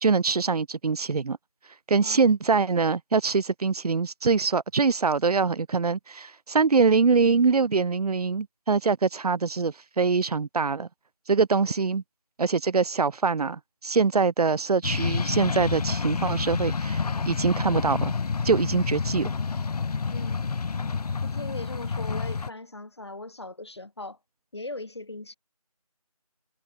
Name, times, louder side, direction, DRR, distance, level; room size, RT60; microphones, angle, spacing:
voice 1, 0.0-1.4 1.9-10.9 11.3-12.0 12.4-18.1 18.4-19.3, right 4 dB, 85° right, 0.5 m, -24 dB
sound 1, 14.8-22.5, left 5 dB, 85° left, 0.5 m, -29 dB
voice 2, 20.1-20.6 21.2-24.2 24.5-25.4, left 2 dB, 45° left, 1.8 m, -39 dB
figure-of-eight pair, 175°, 19 cm